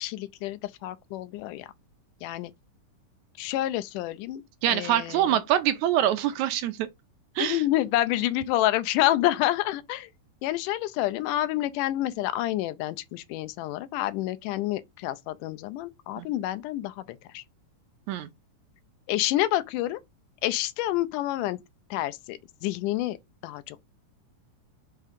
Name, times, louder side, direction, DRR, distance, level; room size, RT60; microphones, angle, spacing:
voice 1, 0.0-1.7 2.2-2.5 3.4-5.4 7.4-10.1 10.4-17.4 19.1-20.0 20.4-21.6 21.9-23.2 23.4-23.8, left 14 dB, 85° left, 2.1 m, -28 dB
voice 2, 4.6-6.9 7.3-7.6 16.2-16.3 18.1-18.3, right 12 dB, 80° right, 1.8 m, -25 dB
5.5 x 3.6 x 5.1 m
omnidirectional pair, 3.7 m